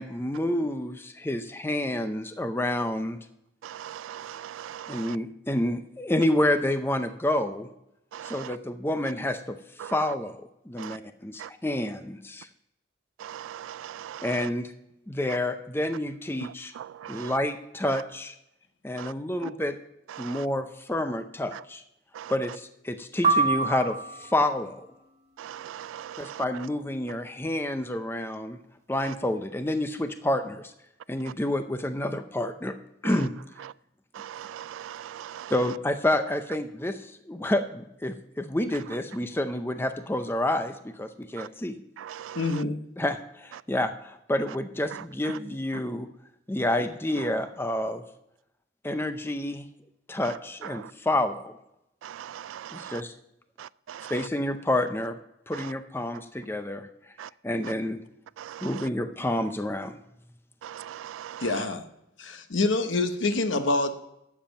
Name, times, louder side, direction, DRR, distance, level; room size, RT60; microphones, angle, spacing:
voice 1, 0.0-3.2 4.9-7.7 8.2-9.6 9.8-12.5 14.2-14.7 15.1-16.7 17.1-18.3 18.8-19.8 20.2-21.8 22.3-24.9 26.2-28.6 28.9-30.7 31.1-32.7 33.0-33.3 35.5-41.8 43.0-46.1 46.5-48.0 48.8-49.7 50.1-51.5 52.7-53.1 54.1-55.2 55.5-56.9 57.4-58.0 58.6-59.9, left 1 dB, 10° left, 0.5 m, -29 dB
voice 2, 3.6-5.2 8.1-8.6 9.8-9.9 10.8-11.0 11.4-11.5 13.2-14.3 16.8-17.3 19.0-19.1 20.2-20.4 22.2-22.3 25.4-26.4 34.2-35.5 41.4-41.5 42.0-42.4 52.0-53.0 53.6-54.1 57.2-57.3 58.4-58.7 60.6-61.4, right 10 dB, 85° right, 0.3 m, -40 dB
sound 1, 23.2-24.5, right 4 dB, 35° right, 1.6 m, -25 dB
voice 3, 42.3-42.8 61.4-61.8 62.2-63.9, left 2 dB, 75° left, 0.9 m, -26 dB
11.5 x 7.5 x 5.2 m
head